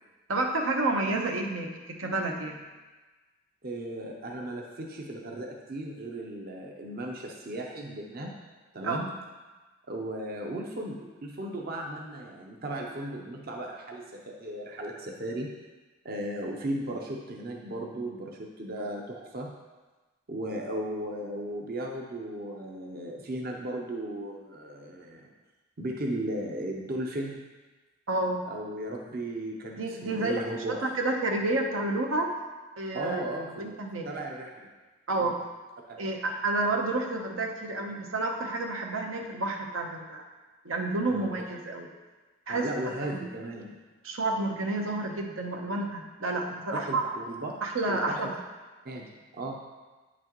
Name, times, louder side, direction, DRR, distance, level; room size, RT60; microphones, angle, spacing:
voice 1, 0.3-1.7 2.0-2.6 8.8-9.0 28.1-28.4 29.7-30.5 30.8-32.3 32.8-33.2 33.6-34.1 35.1-35.4 36.0-40.2 40.6-41.9 42.5-43.2 44.0-47.1 47.6-48.4, right 2 dB, 85° right, 1 dB, 1.0 m, -30 dB
voice 2, 3.6-8.4 8.7-9.1 9.9-15.5 16.0-19.5 20.3-25.3 25.8-27.4 28.5-30.9 32.9-33.8 34.0-34.6 35.2-35.3 35.9-36.2 41.1-41.3 42.5-43.8 46.7-47.5 47.9-48.2 48.8-49.6, right 1 dB, 45° right, 0 dB, 0.7 m, -36 dB
9.0 x 6.1 x 3.0 m, 1.2 s
head